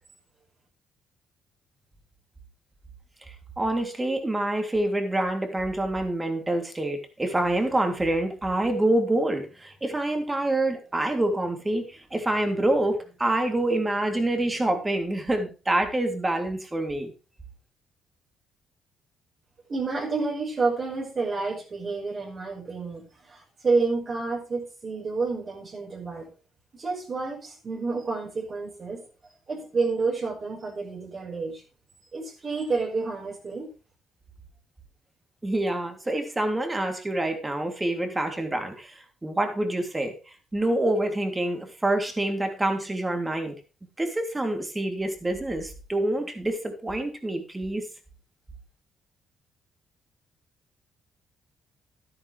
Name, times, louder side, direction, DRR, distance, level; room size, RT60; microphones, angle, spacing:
voice 1, 3.6-17.1 35.4-40.1 40.5-43.5 44.0-47.8, right 1 dB, 15° right, 5 dB, 3.2 m, -26 dB
voice 2, 19.7-26.3 26.7-29.0 29.5-31.6 32.1-33.7, right 4 dB, 40° right, 0 dB, 5.4 m, -29 dB
12.5 x 11.0 x 3.4 m, 0.33 s
cardioid pair, 90°, 0 cm